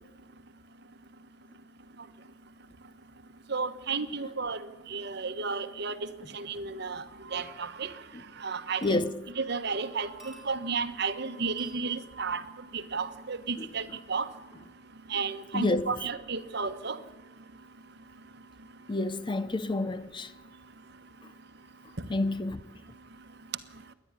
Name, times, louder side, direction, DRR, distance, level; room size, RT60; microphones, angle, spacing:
voice 1, 3.5-6.1 6.3-7.9 8.4-9.0 9.3-12.4 12.7-14.3 15.1-17.0, right 4 dB, 60° right, 1.2 m, -33 dB
voice 2, 8.8-9.2 13.6-13.7 15.5-15.9 18.9-20.3 22.1-22.6, left 2 dB, 25° left, 0.6 m, -29 dB
sound 1, 8.8-9.5 10.2-10.9 11.6-11.9 13.2-13.5 14.4-14.5, right 2 dB, ahead, 5.9 m, -56 dB
27.5 x 11.0 x 9.7 m
head